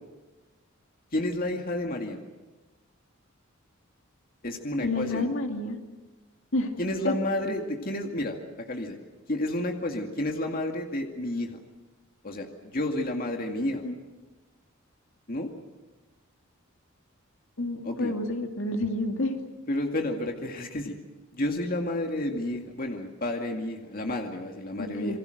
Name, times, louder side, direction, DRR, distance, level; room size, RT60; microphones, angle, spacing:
voice 1, 1.1-2.2 4.4-5.3 6.8-9.0 9.3-11.6 12.2-13.8 15.3-15.5 17.8-18.1 19.7-21.0 21.3-25.2, left 1 dB, 45° left, 3 dB, 2.2 m, -31 dB
voice 2, 4.8-5.8 6.5-6.7 7.0-7.1 13.8-13.9 17.6-19.4 24.8-25.2, left 2 dB, 65° left, 4 dB, 2.4 m, -29 dB
28.5 x 22.5 x 6.6 m, 1.2 s
head